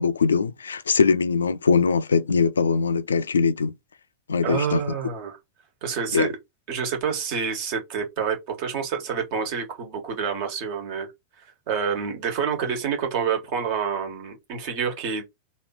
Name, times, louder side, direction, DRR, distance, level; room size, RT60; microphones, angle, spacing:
voice 1, 0.0-3.7 4.3-4.8 6.1-6.3, left 5 dB, 70° left, 0.3 m, -21 dB
voice 2, 4.4-5.4 5.8-6.3 6.7-11.1 11.7-15.2, right 6 dB, 45° right, 1.5 m, -27 dB
3.2 x 2.8 x 4.3 m
figure-of-eight pair, 90°, 0 cm